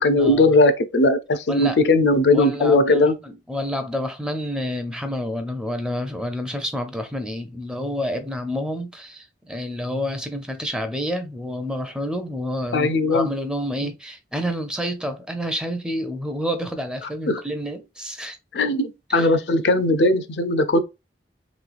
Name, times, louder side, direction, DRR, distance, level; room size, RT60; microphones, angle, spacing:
voice 1, 0.0-3.2 12.7-13.3 13.8-13.9 17.3-17.4 18.5-20.8, left 2 dB, 80° left, 0.6 m, -18 dB
voice 2, 1.5-1.8 2.3-18.4 19.1-19.3, equal, 5° right, 0.5 m, -29 dB
3.1 x 3.1 x 2.4 m
head